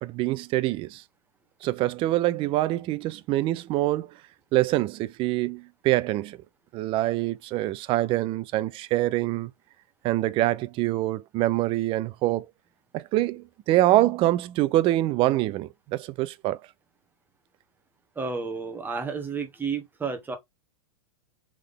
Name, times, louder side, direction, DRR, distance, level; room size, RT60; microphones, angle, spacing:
voice 1, 0.0-1.0 1.6-4.1 4.5-6.4 6.7-9.5 10.0-12.5 12.9-16.6, right 16 dB, 30° right, 0.4 m, -25 dB
voice 2, 18.2-20.4, right 5 dB, 10° right, 1.1 m, -31 dB
3.6 x 3.2 x 3.7 m
hypercardioid pair, 130°, 19 cm